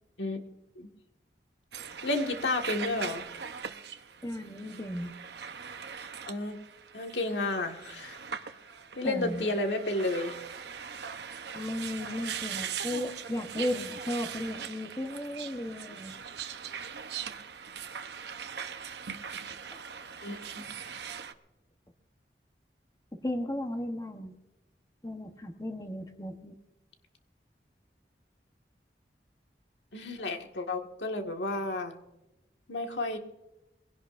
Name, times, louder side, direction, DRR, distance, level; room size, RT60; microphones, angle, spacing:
sound 1, 1.7-21.3, right 7 dB, 75° right, 0.9 m, -41 dB
voice 1, 2.0-3.2 6.3-6.6 6.9-8.2 9.0-10.4 20.2-20.6 29.9-31.9 32.7-33.2, left 2 dB, 85° left, 4 dB, 1.7 m, -31 dB
voice 2, 4.2-5.1 9.0-9.5 11.5-16.1 19.7-19.8 23.1-24.4 25.0-26.5, left 1 dB, 20° left, 5 dB, 1.0 m, -35 dB
22.5 x 17.0 x 2.6 m, 0.95 s
head